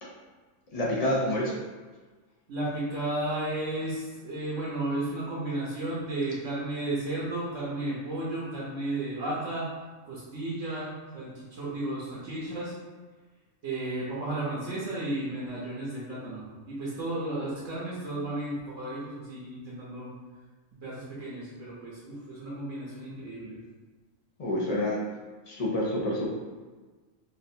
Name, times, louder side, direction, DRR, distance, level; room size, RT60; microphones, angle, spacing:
voice 1, 0.7-1.6 24.4-25.0 25.5-26.3, left 1 dB, 50° left, -4 dB, 0.5 m, -28 dB
voice 2, 2.5-9.7 10.0-12.7 13.6-20.1 20.8-23.6, right 1 dB, 70° right, -7 dB, 1.2 m, -33 dB
4.1 x 2.4 x 2.7 m, 1.3 s
omnidirectional pair, 1.4 m